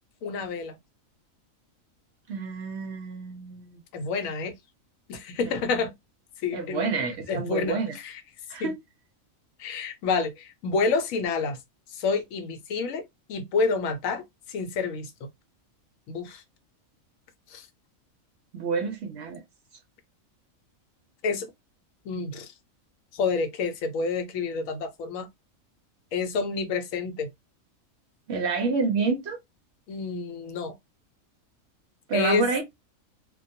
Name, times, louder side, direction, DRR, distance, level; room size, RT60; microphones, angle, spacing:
voice 1, 0.2-0.8 3.9-4.5 5.1-5.9 6.4-8.2 8.6-8.7 9.6-11.6 11.9-13.0 13.3-14.2 14.5-15.3 16.1-16.4 17.5-17.7 21.2-21.5 22.1-22.5 23.1-25.3 26.1-27.3 29.9-30.7 32.1-32.5, left 4 dB, 75° left, 1.0 m, -28 dB
voice 2, 2.3-3.8 6.5-8.0 8.5-8.7 18.5-19.4 28.3-29.4 32.1-32.6, right 4 dB, 65° right, 0.7 m, -28 dB
2.2 x 2.2 x 2.6 m
omnidirectional pair, 1.4 m